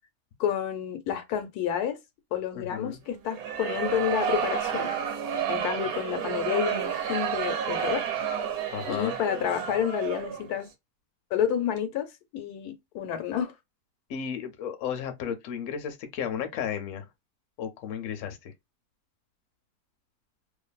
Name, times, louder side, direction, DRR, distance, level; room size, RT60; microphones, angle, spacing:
voice 1, 0.4-2.0 2.3-4.9 5.5-8.0 8.9-10.7 11.3-13.5, left 9 dB, 90° left, 1.2 m, -29 dB
voice 2, 2.5-3.0 8.7-9.2 14.1-17.1 17.6-18.5, left 8 dB, 65° left, 0.9 m, -34 dB
sound 1, 3.3-10.5, right 8 dB, 80° right, 1.2 m, -30 dB
2.6 x 2.5 x 2.2 m
omnidirectional pair, 1.6 m